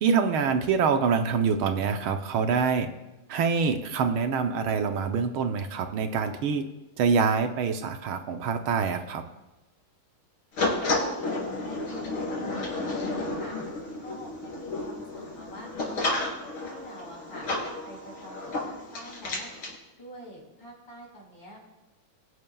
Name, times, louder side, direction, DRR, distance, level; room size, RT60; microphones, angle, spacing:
voice 1, 0.0-2.9 3.3-6.7 7.0-9.2, right 5 dB, 75° right, 6 dB, 1.6 m, -25 dB
sound 1, 10.6-19.7, left 2 dB, 75° left, 3.9 m, -32 dB
voice 2, 10.6-13.6 14.0-16.1 16.6-17.5 17.8-19.5 20.0-21.6, equal, 55° left, -2 dB, 5.2 m, -46 dB
22.5 x 11.0 x 2.3 m, 1.0 s
omnidirectional pair, 2.4 m